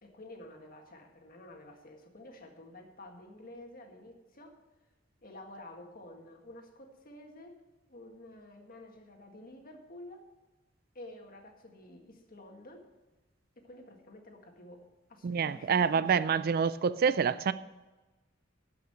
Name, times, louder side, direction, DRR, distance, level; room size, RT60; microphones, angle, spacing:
voice 1, 0.0-4.6 5.2-7.6 7.9-10.3 11.0-12.9 13.6-14.8 15.1-16.4, left 1 dB, 50° left, 1.8 m, -50 dB
voice 2, 15.2-17.5, right 6 dB, 50° right, 0.4 m, -27 dB
12.0 x 5.8 x 7.8 m
head